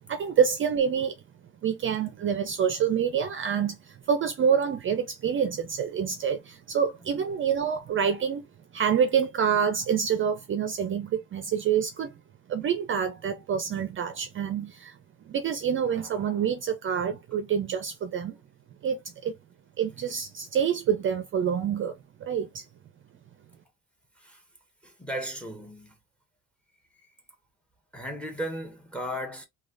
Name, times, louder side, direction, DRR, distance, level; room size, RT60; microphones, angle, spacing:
voice 1, 0.1-1.1 1.6-8.5 8.7-12.2 12.5-15.0 15.3-18.4 18.8-19.3 19.8-21.9 22.2-22.6, right 7 dB, 40° right, 0.4 m, -27 dB
voice 2, 24.8-25.9 27.9-29.5, equal, 5° left, 0.8 m, -35 dB
3.1 x 2.3 x 2.4 m
cardioid pair, 135°, 33 cm